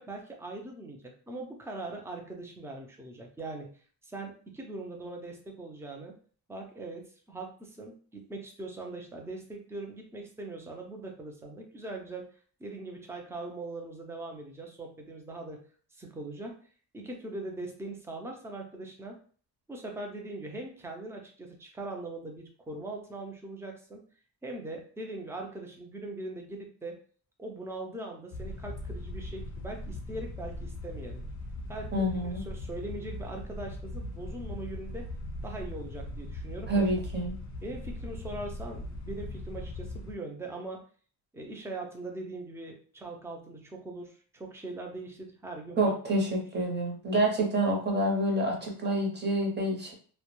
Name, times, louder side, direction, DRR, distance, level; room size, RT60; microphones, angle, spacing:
voice 1, 0.0-3.7 4.0-6.1 6.5-12.3 12.6-15.6 16.0-16.6 16.9-19.2 19.7-24.0 24.4-27.0 27.4-31.2 31.7-35.1 35.4-36.8 37.6-40.8 41.3-45.9, right 2 dB, 5° right, 1 dB, 0.3 m, -41 dB
Air Conditioner intake, 28.3-40.1, left 1 dB, 45° left, 0.5 m, -39 dB
voice 2, 31.9-32.4 36.7-37.3 45.8-49.9, right 1 dB, 25° right, 0 dB, 0.7 m, -27 dB
2.2 x 2.1 x 2.9 m, 0.43 s
wide cardioid pair, 160°, 40 cm